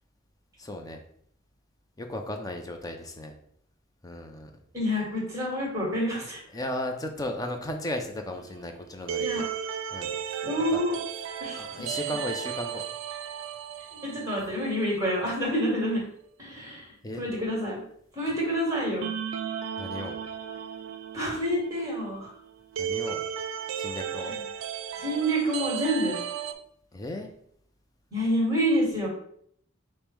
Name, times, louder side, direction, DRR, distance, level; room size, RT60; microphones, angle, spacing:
voice 1, 0.6-1.0 2.0-3.3 4.0-4.5 6.5-9.5 9.9-10.8 11.6-12.8 17.0-17.2 19.8-20.2 22.8-23.2 23.7-24.3 26.9-27.3, left 1 dB, 20° left, 4 dB, 0.5 m, -35 dB
voice 2, 4.7-6.4 9.2-9.7 10.4-11.0 11.4-12.1 14.0-16.0 16.4-17.8 18.1-19.1 21.1-22.3 24.1-24.4 25.0-26.2 28.1-29.1, equal, 15° right, -4 dB, 1.7 m, -28 dB
sound 1, 8.3-15.0 15.3-15.4 19.0-26.5, right 8 dB, 70° right, 0.4 m, -35 dB
5.2 x 2.1 x 4.5 m, 0.67 s
head